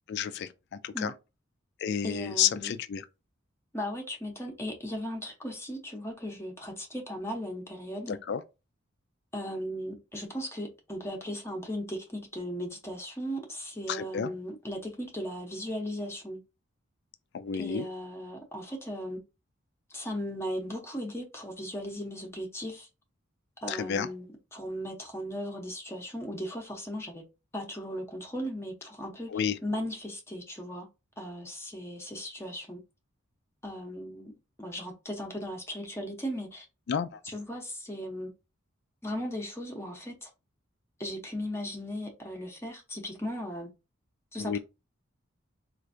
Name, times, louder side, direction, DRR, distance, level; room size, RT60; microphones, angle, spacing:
voice 1, 0.1-1.1 1.8-3.0 8.1-8.4 13.9-14.3 17.3-17.9 23.7-24.1 29.3-29.6 36.9-37.2 44.4-44.6, left 8 dB, 55° left, 0.4 m, -30 dB
voice 2, 2.0-2.7 3.7-8.2 9.3-16.4 17.5-19.2 19.9-22.9 23.6-27.2 27.5-29.3 29.6-30.9 31.2-32.8 33.6-34.3 34.6-36.7 37.2-38.3 39.0-40.3 41.0-43.7 44.3-44.6, equal, 15° left, 0.7 m, -37 dB
4.3 x 2.5 x 2.5 m
head